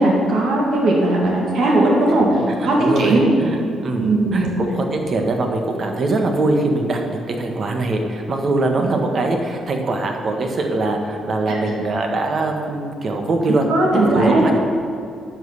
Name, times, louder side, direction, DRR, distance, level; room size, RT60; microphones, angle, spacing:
voice 1, 0.0-2.3 2.6-3.2 4.0-4.5 8.8-8.9 11.5-11.6 13.7-14.5, right 2 dB, 75° right, -3 dB, 2.5 m, -17 dB
voice 2, 2.5-13.6 13.9-14.5, right 2 dB, 50° right, 3 dB, 1.4 m, -22 dB
10.5 x 5.5 x 7.0 m, 2.5 s
cardioid pair, 90°, 0 cm